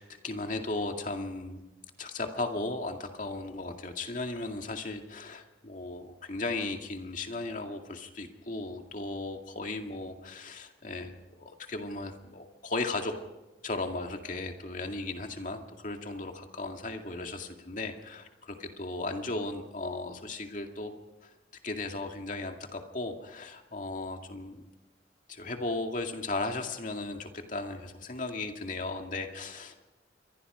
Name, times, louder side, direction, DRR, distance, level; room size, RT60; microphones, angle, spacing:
voice 1, 0.0-1.6 2.0-13.1 13.6-20.9 21.2-21.3 21.6-24.6 25.3-29.8, left 2 dB, 45° left, 4 dB, 2.2 m, -36 dB
28.0 x 23.5 x 5.0 m, 1.0 s
head